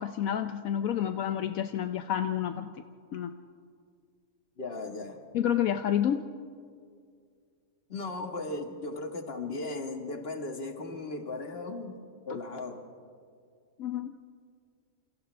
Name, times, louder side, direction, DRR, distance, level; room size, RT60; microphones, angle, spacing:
voice 1, 0.0-2.7 3.1-3.3 5.3-6.3 13.8-14.1, left 10 dB, 80° left, 8 dB, 1.2 m, -29 dB
voice 2, 4.6-5.2 7.9-12.8, left 2 dB, 45° left, 4 dB, 2.0 m, -37 dB
29.0 x 28.5 x 3.4 m, 2.2 s
omnidirectional pair, 1.5 m